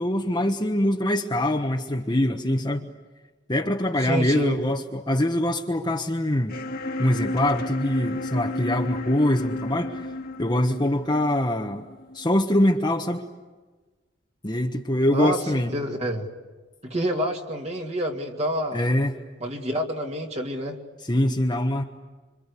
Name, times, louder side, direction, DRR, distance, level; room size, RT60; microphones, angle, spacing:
voice 1, 0.0-2.9 3.5-6.6 7.0-10.0 10.4-11.8 12.1-13.2 14.4-15.7 18.7-19.1 21.0-21.8, left 1 dB, 25° left, 1 dB, 1.3 m, -23 dB
voice 2, 4.0-4.6 15.1-16.3 16.8-18.8 19.4-20.8, equal, 35° right, 1 dB, 2.5 m, -28 dB
sound 1, 6.5-12.4, left 2 dB, 50° left, 2.0 m, -32 dB
26.5 x 26.5 x 8.4 m, 1.3 s
head